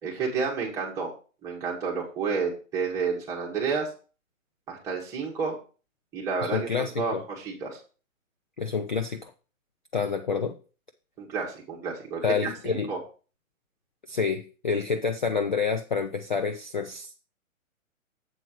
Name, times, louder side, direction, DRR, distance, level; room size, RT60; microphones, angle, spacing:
voice 1, 0.0-1.1 1.4-3.9 4.7-5.6 6.1-7.8 11.2-13.0, right 5 dB, 5° right, -3 dB, 1.3 m, -30 dB
voice 2, 6.4-7.2 8.6-9.3 9.9-10.6 12.2-12.9 14.1-17.1, left 5 dB, 35° left, 8 dB, 0.4 m, -28 dB
7.8 x 4.4 x 6.2 m, 0.36 s
hypercardioid pair, 170°, 41 cm